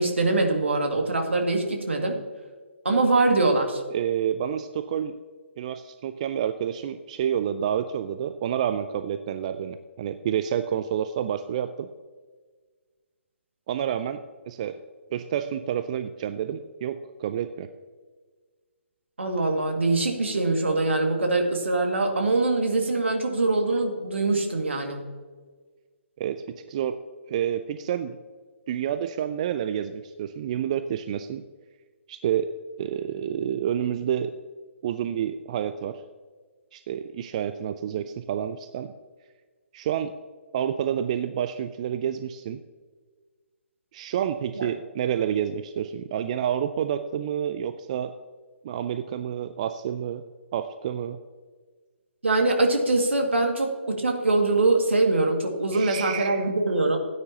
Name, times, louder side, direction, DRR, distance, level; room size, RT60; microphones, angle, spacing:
voice 1, 0.0-2.2 2.8-3.8 19.2-25.1 44.6-44.7 52.2-57.0, right 2 dB, 65° right, 2 dB, 2.0 m, -23 dB
voice 2, 3.9-5.1 5.6-11.9 13.7-14.2 14.5-14.8 15.1-17.7 26.2-27.0 27.3-28.2 28.7-31.4 32.1-32.5 32.8-34.3 34.8-36.0 36.7-38.9 39.7-40.1 40.5-42.6 43.9-48.2 48.6-50.2 50.5-51.2 55.7-56.4, right 9 dB, 30° right, 10 dB, 0.4 m, -29 dB
16.5 x 9.3 x 2.9 m, 1.5 s
figure-of-eight pair, 135°, 7 cm